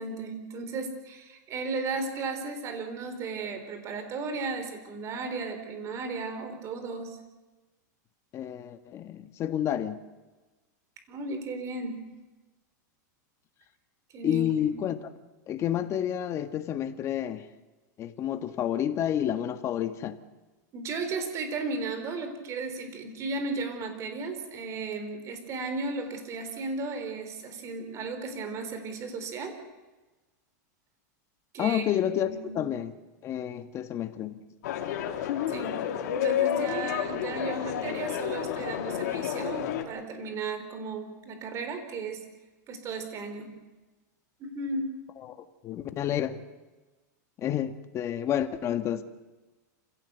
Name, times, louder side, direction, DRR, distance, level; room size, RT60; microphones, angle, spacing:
voice 1, 0.0-7.2 11.1-12.0 14.1-14.8 20.7-29.6 31.5-31.9 32.2-32.7 35.5-35.8 36.1-42.2 42.7-43.5 44.4-44.9, right 3 dB, 30° right, 8 dB, 4.0 m, -35 dB
voice 2, 8.3-10.0 14.2-15.1 15.5-17.5 18.0-20.2 31.6-32.9 33.2-34.4 45.2-45.4 45.6-46.4 47.4-49.0, left 10 dB, 30° left, 9 dB, 1.5 m, -29 dB
sound 1, 34.6-39.8, left 10 dB, 65° left, 3.2 m, -30 dB
28.0 x 16.5 x 8.2 m, 1.2 s
supercardioid pair, 140°, 10 cm